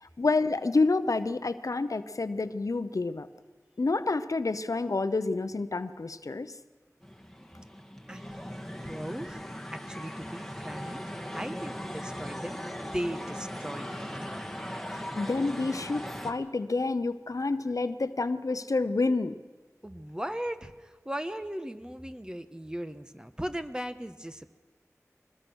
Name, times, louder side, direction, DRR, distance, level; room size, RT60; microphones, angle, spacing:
voice 1, 0.0-3.3 3.8-6.5 15.2-19.4, left 3 dB, 85° left, 12 dB, 0.8 m, -28 dB
sound 1, 7.0-16.3, equal, 5° left, 2.2 m, -39 dB
voice 2, 8.1-11.0 11.3-14.4 19.8-24.5, equal, 15° right, 9 dB, 1.3 m, -38 dB
22.5 x 20.0 x 6.3 m, 1.3 s
wide cardioid pair, 40°, 6 cm